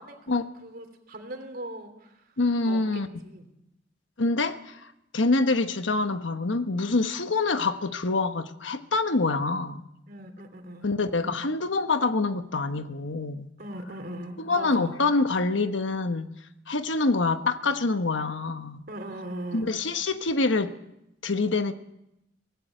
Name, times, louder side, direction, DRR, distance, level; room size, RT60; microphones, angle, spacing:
voice 1, 0.0-2.2 2.6-3.5 10.1-10.9 11.2-11.4 13.6-15.0 18.9-19.7, right 1 dB, 50° right, 6 dB, 3.2 m, -39 dB
voice 2, 2.4-3.1 4.2-9.8 10.8-13.5 14.4-16.3 16.7-18.8 19.5-20.8 21.2-21.7, left 3 dB, 80° left, 9 dB, 1.2 m, -26 dB
18.5 x 16.0 x 9.1 m, 0.85 s
head